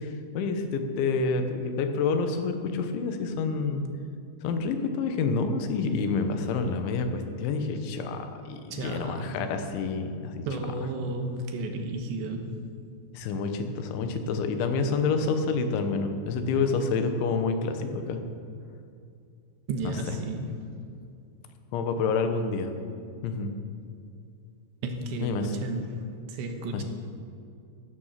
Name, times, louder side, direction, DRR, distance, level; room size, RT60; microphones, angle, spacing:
voice 1, 0.0-3.9 4.4-10.4 13.1-18.2 19.8-19.9 21.7-22.7 23.2-23.5 25.2-25.6 26.7-26.8, left 4 dB, 85° left, 7 dB, 3.5 m, -28 dB
voice 2, 8.7-9.5 10.5-12.6 19.7-20.7 24.8-26.8, right 2 dB, 75° right, 4 dB, 3.5 m, -33 dB
15.0 x 13.0 x 5.9 m, 2.4 s
omnidirectional pair, 5.2 m